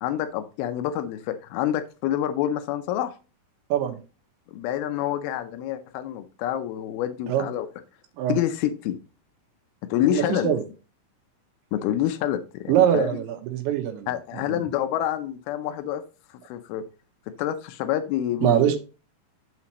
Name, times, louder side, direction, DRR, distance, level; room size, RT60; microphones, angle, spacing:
voice 1, 0.0-3.1 4.5-7.7 8.3-9.0 9.9-10.5 11.7-13.2 14.1-16.0 16.3-16.8 17.4-18.8, left 12 dB, 90° left, 9 dB, 2.2 m, -27 dB
voice 2, 10.0-10.6 12.7-14.1 14.5-14.7 18.4-18.8, right 10 dB, 85° right, 5 dB, 3.3 m, -23 dB
12.0 x 4.3 x 2.9 m, 0.33 s
omnidirectional pair, 5.1 m